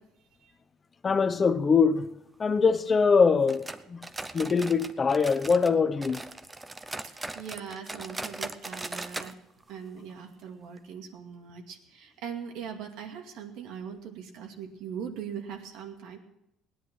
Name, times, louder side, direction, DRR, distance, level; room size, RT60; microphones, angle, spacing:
voice 1, 1.0-2.1 2.4-4.0 4.3-6.2, left 5 dB, 25° left, 0.7 m, -23 dB
sound 1, 3.5-5.7 6.0-9.3 9.6-9.7 10.1-10.2 10.8-10.9, right 2 dB, 10° right, 0.7 m, -39 dB
voice 2, 7.1-9.3 9.7-16.2, right 7 dB, 75° right, 2.3 m, -40 dB
18.0 x 10.5 x 6.2 m
cardioid pair, 150°, 0 cm